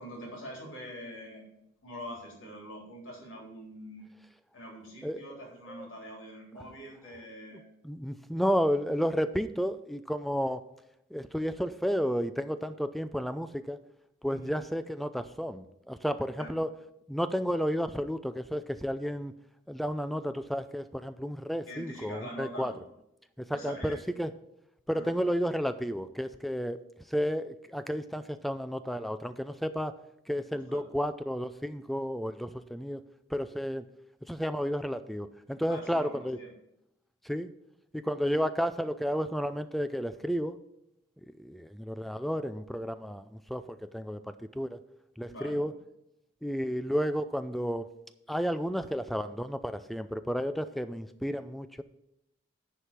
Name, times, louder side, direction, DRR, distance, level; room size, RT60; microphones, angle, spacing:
voice 1, 0.0-1.4 1.8-4.1 4.5-7.6 14.3-14.5 16.4-16.5 21.7-22.8 23.5-24.0 24.9-25.1 30.5-30.8 35.7-36.5 45.3-45.6, equal, 80° left, -2 dB, 3.7 m, -44 dB
voice 2, 7.8-10.6 11.1-13.8 14.2-16.7 17.1-19.3 19.7-22.7 23.4-24.3 24.9-26.8 27.1-29.9 30.3-33.0 33.3-33.8 34.3-36.4 37.2-37.5 37.9-40.6 41.4-44.8 45.2-45.7 46.4-47.9 48.3-51.8, equal, ahead, 11 dB, 0.4 m, -32 dB
10.0 x 4.8 x 6.8 m, 0.82 s
head